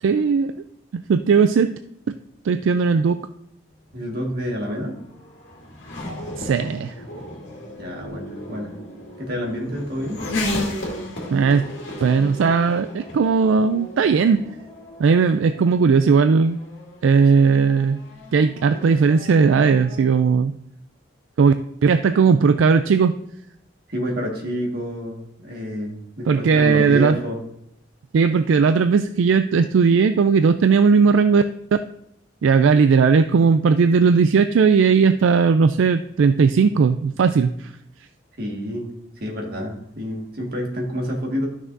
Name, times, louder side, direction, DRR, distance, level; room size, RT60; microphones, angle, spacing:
voice 1, 0.0-0.5 0.9-1.8 2.4-3.3 6.4-6.9 11.3-11.7 12.0-14.4 15.0-16.6 17.0-18.0 18.3-20.5 21.4-21.5 21.8-23.2 26.3-27.2 28.1-31.4 31.7-31.8 32.4-37.7, right 5 dB, 75° right, 10 dB, 0.3 m, -17 dB
Race car auto racing / Accelerating revving vroom, 3.9-20.2, left 1 dB, 65° left, 2.3 m, -35 dB
voice 2, 3.9-4.9 7.8-8.7 9.2-10.2 23.9-27.4 38.4-38.9 39.2-41.5, equal, 50° right, 0 dB, 1.8 m, -28 dB
12.5 x 6.2 x 2.6 m, 0.77 s
head